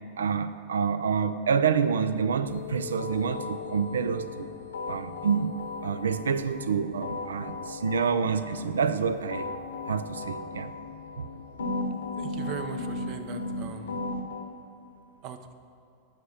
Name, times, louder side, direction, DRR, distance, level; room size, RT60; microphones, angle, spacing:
voice 1, 0.2-4.5 4.9-5.5 5.8-9.6 9.9-10.7 11.2-11.3, right 6 dB, 80° right, 13 dB, 0.4 m, -27 dB
sound 1, 2.5-14.2, left 11 dB, 65° left, 0.4 m, -44 dB
sound 2, 3.0-4.4 4.7-6.6 7.0-9.0 9.3-11.3 11.6-14.4, left 2 dB, 80° left, 0.9 m, -36 dB
voice 2, 12.2-13.9 15.2-15.5, right 7 dB, 45° right, 8 dB, 0.8 m, -39 dB
9.5 x 5.8 x 6.6 m, 2.6 s
hypercardioid pair, 95°, 0 cm